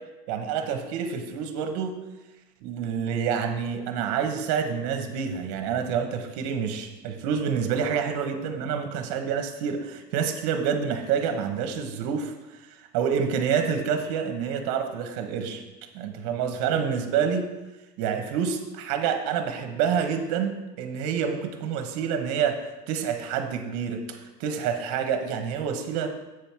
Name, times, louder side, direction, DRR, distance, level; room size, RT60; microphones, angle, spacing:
voice 1, 0.3-1.9 2.6-12.3 12.9-15.6 15.9-17.4 18.0-22.6 22.9-24.0 24.4-26.1, right 7 dB, 50° right, 6 dB, 1.2 m, -27 dB
8.0 x 5.1 x 5.9 m, 1.1 s
supercardioid pair, 170°, 21 cm